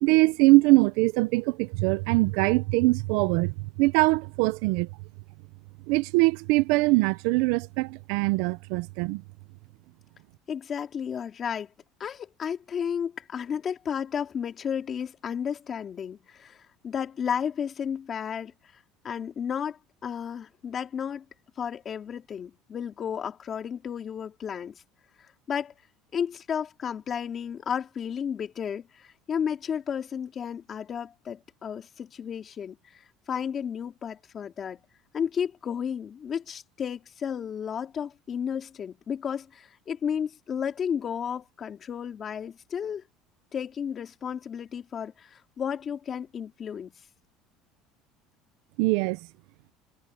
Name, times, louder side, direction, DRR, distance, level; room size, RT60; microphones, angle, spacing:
voice 1, 0.0-4.9 5.9-9.2 48.8-49.2, right 23 dB, 75° right, 0.6 m, -22 dB
voice 2, 10.5-11.7 12.0-18.5 19.0-21.2 21.6-24.8 25.5-25.7 26.1-33.0 33.3-34.8 35.1-43.0 43.5-46.9, left 7 dB, 30° left, 3.4 m, -33 dB
cardioid pair, 155°, 0 cm